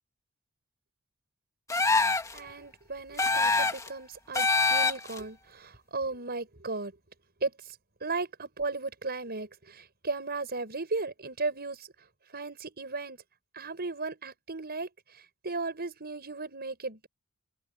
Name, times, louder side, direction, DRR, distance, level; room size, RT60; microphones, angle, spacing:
sound 1, 1.7-2.4 3.2-3.9 4.3-5.2, left 3 dB, 15° left, 2.3 m, -25 dB
voice 1, 2.3-7.0 7.4-7.5 8.0-11.9 12.3-13.2 13.5-17.1, right 3 dB, 50° right, 6.5 m, -36 dB
open air
head